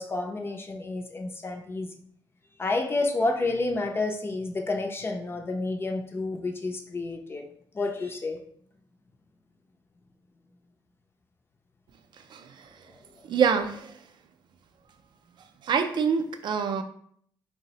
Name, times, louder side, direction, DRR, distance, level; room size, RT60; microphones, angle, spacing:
voice 1, 0.0-1.9 2.6-7.4 7.7-8.4, left 2 dB, 25° left, 0.4 m, -30 dB
voice 2, 13.3-14.0 15.6-16.8, right 6 dB, 55° right, 0.4 m, -25 dB
3.8 x 2.0 x 2.7 m
cardioid pair, 85°, 10 cm